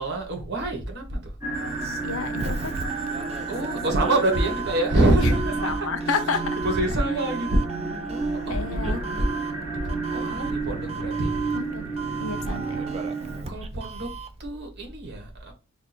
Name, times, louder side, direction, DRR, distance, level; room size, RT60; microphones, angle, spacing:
voice 1, 0.0-1.3 3.5-7.6 8.1-9.3 9.7-11.3 12.4-12.7 13.5-14.1 14.4-15.5, right 1 dB, 50° right, 1.2 m, -26 dB
sound 1, 1.4-13.4, right 3 dB, 10° right, 1.7 m, -31 dB
Doorbell, 1.6-14.4, right 5 dB, 30° right, 0.4 m, -38 dB
voice 2, 2.0-2.7 5.2-5.3 5.6-6.6 8.5-9.0 11.5-11.8 12.2-12.8, left 4 dB, 65° left, 0.5 m, -30 dB
3.5 x 2.4 x 4.1 m
head